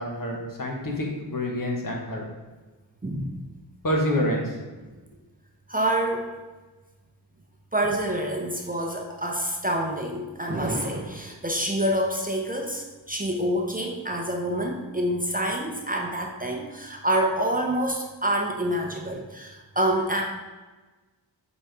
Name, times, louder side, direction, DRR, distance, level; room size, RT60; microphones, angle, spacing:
voice 1, 0.0-2.2 3.8-4.6, left 1 dB, 50° left, -1 dB, 1.5 m, -27 dB
voice 2, 3.0-3.4 5.7-6.3 7.7-20.2, right 1 dB, 20° right, 0 dB, 0.8 m, -27 dB
8.1 x 4.2 x 3.5 m, 1.2 s
wide cardioid pair, 90°, 43 cm